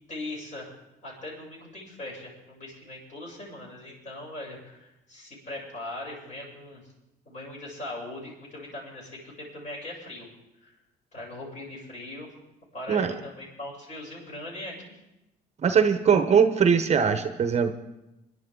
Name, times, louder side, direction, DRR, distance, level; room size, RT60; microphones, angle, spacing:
voice 1, 0.1-0.7 1.0-6.8 7.2-10.3 10.6-10.7 11.1-12.3 12.7-14.9, left 1 dB, 45° left, -3 dB, 8.0 m, -40 dB
voice 2, 15.6-17.7, right 6 dB, 40° right, 8 dB, 0.9 m, -21 dB
26.0 x 11.5 x 3.9 m, 0.93 s
cardioid pair, 110°, 17 cm